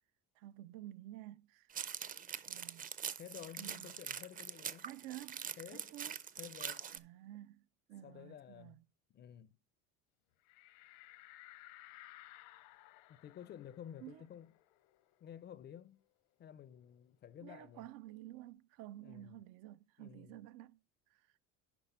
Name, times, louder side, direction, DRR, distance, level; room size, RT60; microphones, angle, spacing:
voice 1, 0.4-1.7 2.5-2.9 3.6-3.9 4.8-6.2 6.9-8.8 14.0-14.2 17.4-20.8 21.1-21.2, right 15 dB, 75° right, 0.5 m, -51 dB
sound 1, 1.7-7.0, right 7 dB, 25° right, 0.5 m, -44 dB
voice 2, 3.2-4.9 5.6-5.9 6.4-6.8 8.0-8.8 9.1-9.6 13.1-14.5 15.2-16.0 16.4-17.9 19.0-19.4 20.0-20.4, left 9 dB, 30° left, 0.4 m, -52 dB
sound 2, 10.5-15.7 16.0-16.1 16.4-18.1, left 16 dB, 80° left, 0.8 m, -59 dB
11.0 x 4.2 x 5.5 m
cardioid pair, 130°, 35 cm